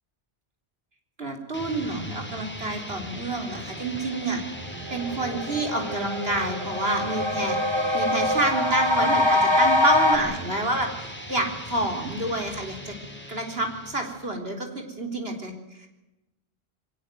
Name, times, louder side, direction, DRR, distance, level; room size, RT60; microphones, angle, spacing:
voice 1, 1.2-4.4 4.9-7.6 7.9-13.0 13.3-15.9, right 2 dB, 70° right, 3 dB, 4.1 m, -28 dB
sound 1, 1.5-14.4, equal, 10° left, 3.2 m, -39 dB
sound 2, 4.4-4.5 4.8-10.2, left 1 dB, 25° right, 3.8 m, -24 dB
23.0 x 19.0 x 9.3 m, 0.96 s
omnidirectional pair, 1.1 m